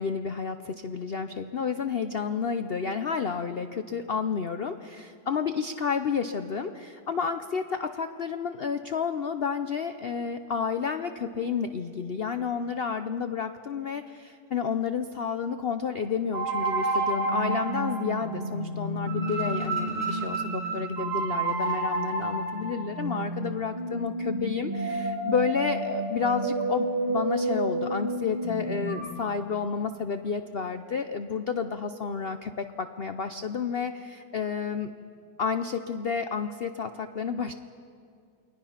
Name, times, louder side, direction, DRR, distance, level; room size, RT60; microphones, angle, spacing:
voice 1, 0.0-34.9 35.4-37.5, left 6 dB, 55° left, 9 dB, 0.6 m, -30 dB
sound 1, 16.3-29.1, right 2 dB, 25° right, 3.6 m, -30 dB
29.0 x 21.5 x 5.8 m, 2.4 s
omnidirectional pair, 1.8 m